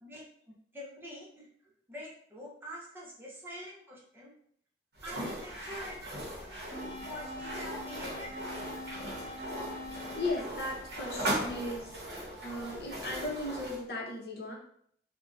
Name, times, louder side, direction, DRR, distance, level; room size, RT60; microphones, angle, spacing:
voice 1, 0.0-1.5 1.9-4.3 5.0-6.6 7.0-8.4, equal, 10° right, -5 dB, 0.5 m, -46 dB
sound 1, 5.0-13.8, right 1 dB, 70° right, 0.7 m, -39 dB
sound 2, 6.7-11.7, left 1 dB, 15° left, 1.1 m, -44 dB
voice 2, 10.1-14.5, left 2 dB, 65° left, -2 dB, 0.6 m, -37 dB
2.6 x 2.1 x 2.3 m, 0.65 s
head